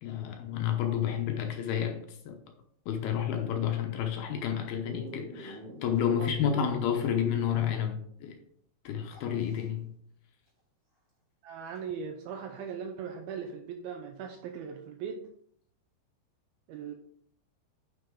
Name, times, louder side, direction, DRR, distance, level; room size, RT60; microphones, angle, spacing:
voice 1, 0.0-2.4 2.9-8.4 8.8-9.9, left 9 dB, 75° left, 2.5 m, -30 dB
Dog, 4.8-7.6 7.9-8.0 9.1-9.7 11.8-11.9, equal, 15° right, 2.8 m, -46 dB
voice 2, 6.2-6.7 11.4-15.2 16.7-16.9, right 6 dB, 85° right, 2.2 m, -39 dB
10.0 x 5.9 x 3.8 m
omnidirectional pair, 5.1 m